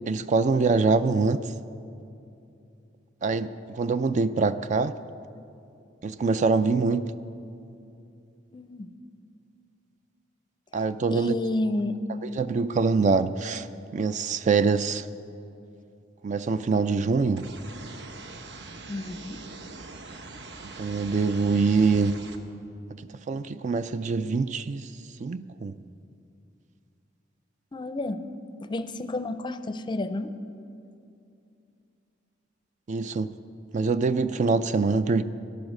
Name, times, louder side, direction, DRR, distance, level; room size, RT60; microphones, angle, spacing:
voice 1, 0.1-1.4 3.2-4.9 6.0-7.1 10.7-11.3 12.3-13.7 13.9-15.1 16.2-17.5 20.8-22.2 23.3-24.9 25.2-25.8 32.9-33.3 33.7-35.2, right 4 dB, 40° right, 13 dB, 0.4 m, -24 dB
voice 2, 8.5-8.9 11.1-12.0 12.3-12.4 18.9-19.4 22.6-22.7 27.7-28.2 28.6-30.3 33.5-33.6 34.4-34.5, left 2 dB, 25° left, 11 dB, 0.5 m, -31 dB
sound 1, 17.4-22.4, right 3 dB, 65° right, 1.0 m, -43 dB
13.5 x 11.5 x 6.5 m, 2.6 s
head